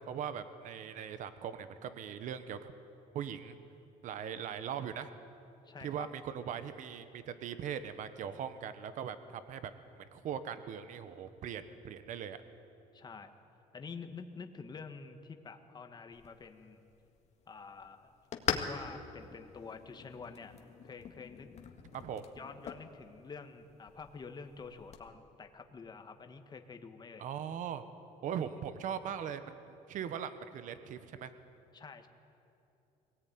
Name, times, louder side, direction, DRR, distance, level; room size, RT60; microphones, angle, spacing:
voice 1, 0.0-2.7 3.1-3.6 4.0-5.1 5.8-9.7 10.1-12.4 21.9-22.2 27.2-27.8 28.2-29.6 29.9-31.3, right 8 dB, 65° right, 11 dB, 1.2 m, -40 dB
voice 2, 5.6-6.1 12.9-13.3 13.7-16.8 17.5-18.1 18.5-20.5 20.8-21.5 22.3-27.3 31.7-32.1, left 5 dB, 30° left, 6 dB, 1.7 m, -48 dB
sound 1, 16.1-25.1, left 7 dB, 50° left, 1.8 m, -43 dB
22.5 x 18.0 x 9.5 m, 2.8 s
cardioid pair, 120°, 14 cm